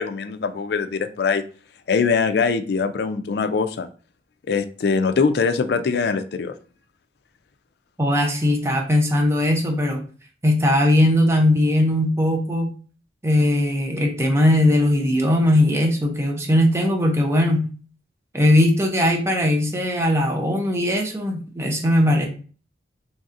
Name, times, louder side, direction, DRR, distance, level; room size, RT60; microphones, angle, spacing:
voice 1, 0.0-1.4 1.9-3.9 4.5-6.6, left 5 dB, 60° left, 10 dB, 0.4 m, -22 dB
voice 2, 8.0-10.0 10.4-12.7 13.2-17.7 18.3-22.3, left 1 dB, 15° right, 2 dB, 0.5 m, -19 dB
3.2 x 2.7 x 3.6 m, 0.40 s
head